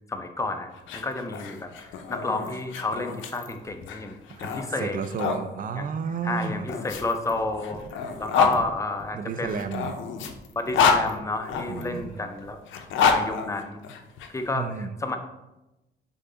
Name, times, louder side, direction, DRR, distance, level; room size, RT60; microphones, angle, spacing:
voice 1, 0.1-4.2 4.4-5.0 5.8-5.9 6.2-9.7 10.6-13.8 14.3-15.2, left 2 dB, 15° left, 6 dB, 0.5 m, -31 dB
sound 1, 0.7-5.4 6.4-8.6 9.5-11.8 12.6-14.3, left 6 dB, 75° left, 0.5 m, -27 dB
voice 2, 4.3-6.7 8.4-8.6 9.1-10.0 11.7-12.1 14.5-14.9, right 6 dB, 45° right, 11 dB, 0.4 m, -32 dB
sound 2, 6.9-12.1 12.4-12.5, left 2 dB, 45° left, 1.0 m, -46 dB
3.7 x 3.4 x 3.8 m, 0.98 s
cardioid pair, 90°, 20 cm